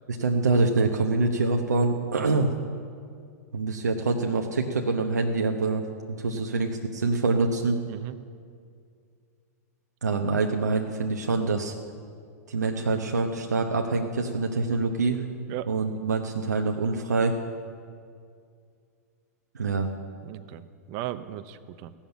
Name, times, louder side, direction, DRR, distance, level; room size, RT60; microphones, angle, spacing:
voice 1, 0.1-2.5 3.5-5.8 6.2-7.8 10.0-11.7 12.5-15.2 15.7-17.4 19.5-19.9, right 3 dB, 90° right, 2 dB, 0.9 m, -25 dB
voice 2, 20.2-21.9, right 14 dB, 45° right, 13 dB, 0.7 m, -37 dB
16.0 x 7.2 x 8.9 m, 2.2 s
hypercardioid pair, 110°, 9 cm